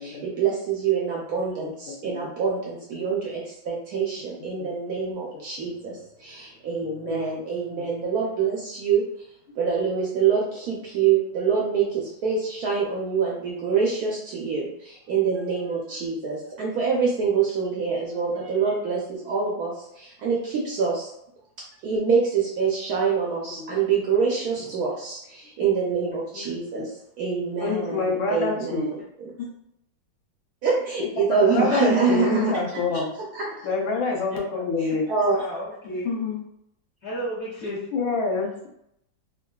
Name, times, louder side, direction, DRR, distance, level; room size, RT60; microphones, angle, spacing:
voice 1, 0.0-9.0 9.6-21.1 21.8-26.9 27.2-29.0 30.6-32.6 33.3-33.7 34.8-35.4, right 6 dB, 75° right, -3 dB, 0.8 m, -25 dB
voice 2, 1.6-2.2 2.9-3.0 4.6-4.7 5.6-5.7 6.8-7.3 7.8-7.9 23.6-23.7 26.3-26.9 27.6-28.9 29.4-29.5 31.3-33.1 33.6-35.1 35.8-36.4 37.9-38.7, left 4 dB, 80° left, -1 dB, 1.5 m, -27 dB
voice 3, 35.3-36.1 37.0-37.9, equal, 50° left, -12 dB, 1.4 m, -34 dB
3.6 x 2.2 x 2.3 m, 0.77 s
omnidirectional pair, 2.2 m